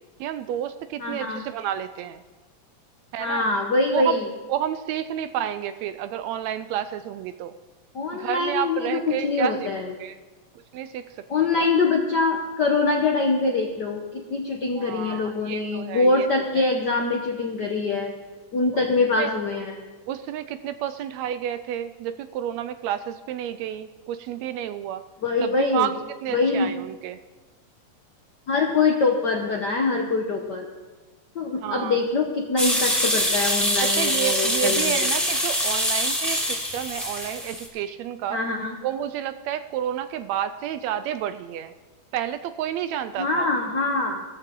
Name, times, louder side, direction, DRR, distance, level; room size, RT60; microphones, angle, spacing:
voice 1, 0.2-2.2 3.1-3.4 3.9-4.2 4.5-7.5 8.1-9.6 10.0-10.2 10.7-11.3 11.6-11.7 14.8-16.3 18.7-18.8 19.2-19.3 20.1-25.0 25.4-25.9 26.2-27.2 31.6-32.0 33.8-38.4 38.8-41.7 42.1-43.5, right 10 dB, 80° right, 11 dB, 1.7 m, -30 dB
voice 2, 1.0-1.4 3.2-4.3 7.9-9.9 11.3-18.1 18.5-19.8 25.2-25.9 26.3-26.7 28.5-30.6 31.3-35.1 38.3-38.8 43.2-44.2, left 3 dB, 65° left, 1 dB, 1.0 m, -24 dB
sound 1, 32.6-37.7, equal, ahead, 2.4 m, -24 dB
15.5 x 14.0 x 3.8 m, 1.2 s
omnidirectional pair, 3.3 m